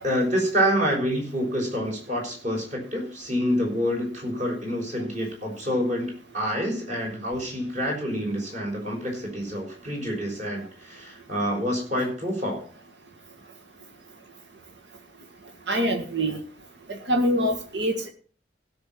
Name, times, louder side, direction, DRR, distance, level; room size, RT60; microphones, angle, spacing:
voice 1, 0.0-6.1 6.3-12.6, equal, 45° right, 0 dB, 6.0 m, -27 dB
voice 2, 15.7-16.4 16.9-18.1, equal, 90° right, 4 dB, 1.7 m, -24 dB
16.0 x 6.7 x 6.1 m, 0.40 s
head